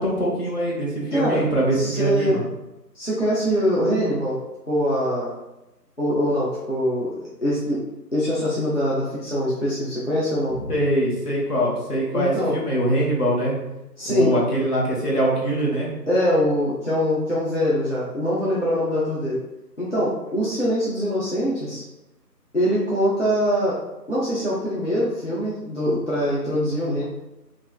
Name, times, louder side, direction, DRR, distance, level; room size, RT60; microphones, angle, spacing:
voice 1, 0.0-2.4 10.7-13.6 14.0-15.9, right 1 dB, 65° left, -4 dB, 1.2 m, -23 dB
voice 2, 1.1-1.4 1.7-2.4 2.9-4.4 4.7-5.3 6.0-7.8 8.1-10.6 12.1-12.6 14.0-14.3 16.1-19.4 19.8-21.8 22.5-23.8 24.1-27.0, equal, 50° left, -7 dB, 0.5 m, -23 dB
3.4 x 2.4 x 2.3 m, 0.96 s
figure-of-eight pair, 175°, 50 cm